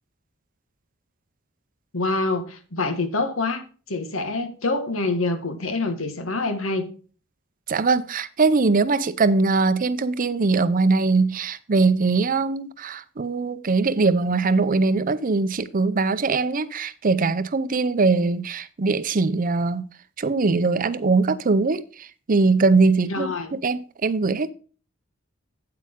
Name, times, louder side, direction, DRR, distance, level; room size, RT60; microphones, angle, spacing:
voice 1, 1.9-3.6 3.9-6.9 23.0-23.5, left 3 dB, 80° left, 1.5 m, -26 dB
voice 2, 7.7-19.8 20.2-24.5, right 3 dB, 45° right, 0.6 m, -21 dB
8.6 x 8.5 x 3.6 m
head